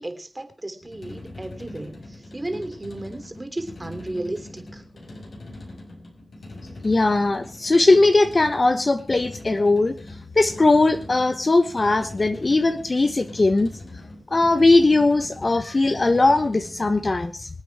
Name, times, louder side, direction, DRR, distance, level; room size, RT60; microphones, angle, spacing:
voice 1, 0.0-4.8, right 1 dB, 25° right, 8 dB, 3.5 m, -34 dB
sound 1, 0.8-17.0, left 1 dB, 70° left, 5.0 m, -41 dB
voice 2, 6.8-9.9 10.4-13.7 14.3-17.5, left 2 dB, 45° left, 9 dB, 1.1 m, -19 dB
25.0 x 8.5 x 4.8 m, 0.35 s
cardioid pair, 50°, 0 cm